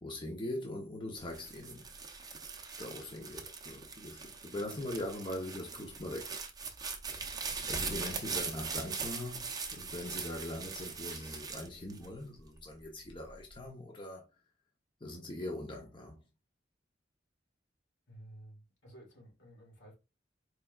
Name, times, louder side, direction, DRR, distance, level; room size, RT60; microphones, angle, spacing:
voice 1, 0.0-1.9 2.8-6.3 7.7-9.4 9.7-14.2 15.0-16.2, left 1 dB, 25° left, 0.7 m, -41 dB
sound 1, 1.2-12.6 13.1-13.7, right 5 dB, 20° right, 0.6 m, -41 dB
voice 2, 18.1-19.9, right 1 dB, 80° left, 1.9 m, -54 dB
4.4 x 3.2 x 2.3 m
head